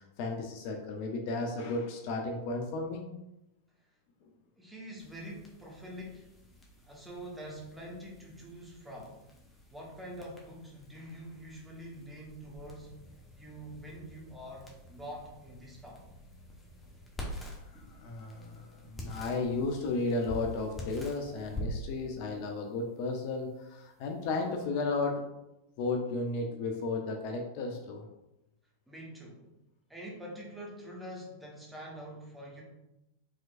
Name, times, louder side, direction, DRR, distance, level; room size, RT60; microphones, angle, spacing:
voice 1, 0.0-3.0 17.7-25.2 25.8-28.1, left 3 dB, 45° left, 2 dB, 0.5 m, -34 dB
voice 2, 4.6-6.3 6.8-9.2 9.7-12.9 13.4-16.0 28.9-29.4 29.9-32.6, equal, 5° right, -3 dB, 1.3 m, -45 dB
sound 1, 5.0-24.6, equal, 10° left, 1.1 m, -47 dB
4.9 x 3.7 x 2.5 m, 0.91 s
figure-of-eight pair, 90°, 0 cm